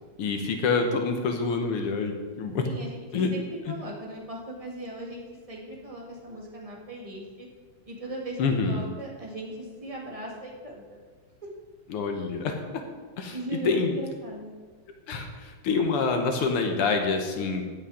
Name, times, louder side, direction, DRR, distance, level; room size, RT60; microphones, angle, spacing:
voice 1, 0.2-2.7 3.1-3.3 8.4-8.8 11.9-12.8 13.2-13.4 13.6-13.9 15.1-17.7, left 4 dB, 85° left, 4 dB, 2.1 m, -26 dB
voice 2, 2.6-5.2 5.5-7.5 7.9-11.0 13.3-14.5, right 1 dB, 15° right, -2 dB, 1.9 m, -38 dB
15.5 x 8.6 x 3.8 m, 1.4 s
omnidirectional pair, 2.4 m